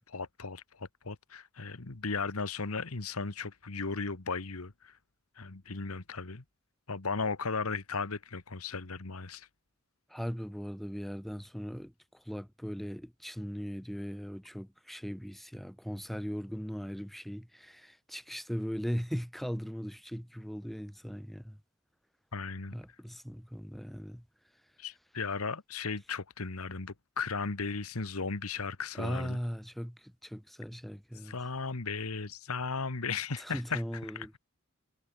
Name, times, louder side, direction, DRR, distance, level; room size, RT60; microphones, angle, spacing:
voice 1, 0.1-5.0 5.4-6.4 6.9-9.5 22.3-22.7 24.8-29.4 31.2-33.8 34.1-34.4, left 4 dB, 85° left, 1.5 m, -36 dB
voice 2, 10.1-21.6 22.7-24.2 29.0-31.4 33.4-34.4, equal, ahead, 3.2 m, -39 dB
head